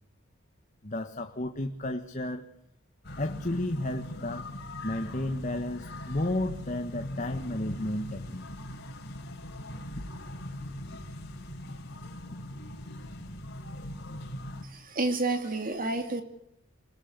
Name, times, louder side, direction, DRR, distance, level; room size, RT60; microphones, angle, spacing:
voice 1, 0.8-2.5 3.2-4.5 4.8-8.4, left 1 dB, 35° left, 1.6 m, -32 dB
sound 1, 3.0-14.6, left 1 dB, 55° left, 4.6 m, -40 dB
voice 2, 14.6-16.2, right 2 dB, 40° right, 2.4 m, -30 dB
27.0 x 21.5 x 8.2 m
head